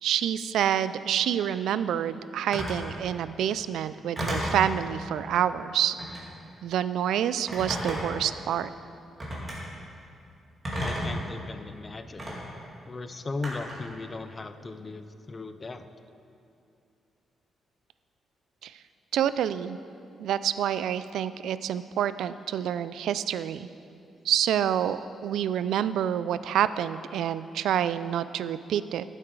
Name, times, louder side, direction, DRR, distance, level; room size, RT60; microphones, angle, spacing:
voice 1, 0.0-6.0 6.6-8.7 18.6-18.7 19.1-19.8 20.2-23.7 24.2-29.0, right 10 dB, 90° right, 14 dB, 0.3 m, -27 dB
Telephone, 2.5-2.8 4.2-4.7 5.9-6.3 7.5-8.2 9.2-9.6 10.6-11.2 12.2-12.3 13.4-13.8, equal, 20° right, 2.2 m, -32 dB
voice 2, 10.8-12.3 12.9-15.9, left 3 dB, 25° left, 10 dB, 0.5 m, -37 dB
13.5 x 7.6 x 4.7 m, 2.6 s
cardioid pair, 160°, 0 cm